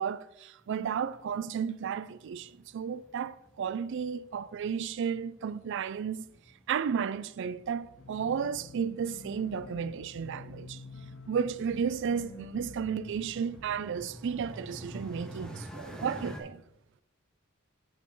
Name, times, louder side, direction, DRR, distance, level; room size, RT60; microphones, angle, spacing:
voice 1, 0.0-6.3 6.7-10.8 11.3-16.6, right 7 dB, 60° right, 0.3 m, -33 dB
sound 1, 0.6-16.4, equal, 5° left, 0.9 m, -50 dB
sound 2, 8.0-14.8, left 3 dB, 65° left, 0.5 m, -49 dB
7.3 x 7.1 x 3.8 m
head